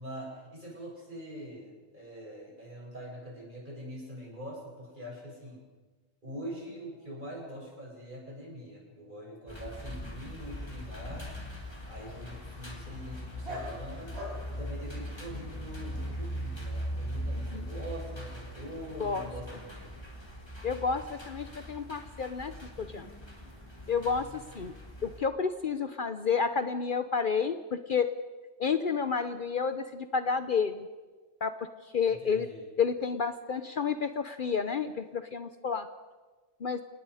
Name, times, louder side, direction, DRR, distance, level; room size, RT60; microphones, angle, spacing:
voice 1, 0.0-5.6 6.2-11.3 11.9-14.1 14.5-19.9 32.1-32.6, equal, 45° right, -3 dB, 7.9 m, -43 dB
sound 1, 9.5-25.2, equal, 20° left, 3.9 m, -40 dB
Dog, 10.3-15.7, equal, 65° right, 5.8 m, -47 dB
voice 2, 20.6-23.1 23.9-24.7 25.0-28.1 28.6-30.9 31.4-31.7 31.9-32.5 32.8-35.9 36.6-36.8, left 5 dB, 50° left, 10 dB, 0.9 m, -30 dB
28.5 x 19.0 x 4.9 m, 1.3 s
omnidirectional pair, 1.2 m